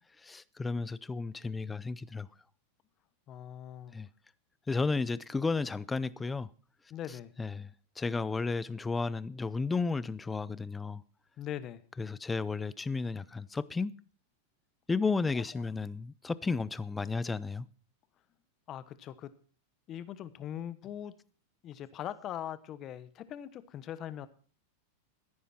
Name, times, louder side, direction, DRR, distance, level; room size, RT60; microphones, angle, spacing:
voice 1, 0.2-2.3 3.9-4.1 4.7-6.5 7.4-7.7 8.0-11.0 12.0-13.9 14.9-17.7, left 4 dB, 10° left, 0.5 m, -33 dB
voice 2, 3.3-3.9 6.9-7.3 11.4-11.8 15.3-15.7 18.7-19.3 19.9-21.1 21.6-24.3, left 10 dB, 35° left, 1.1 m, -41 dB
14.5 x 10.0 x 4.3 m
supercardioid pair, 130°, 0 cm